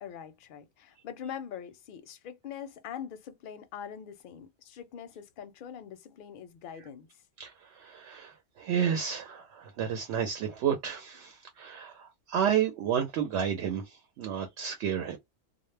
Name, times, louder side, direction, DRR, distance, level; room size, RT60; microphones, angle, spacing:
voice 1, 0.0-7.1, left 8 dB, 60° left, 0.6 m, -43 dB
voice 2, 7.4-15.2, right 8 dB, 80° right, 0.9 m, -31 dB
2.1 x 2.0 x 3.1 m
omnidirectional pair, 1.2 m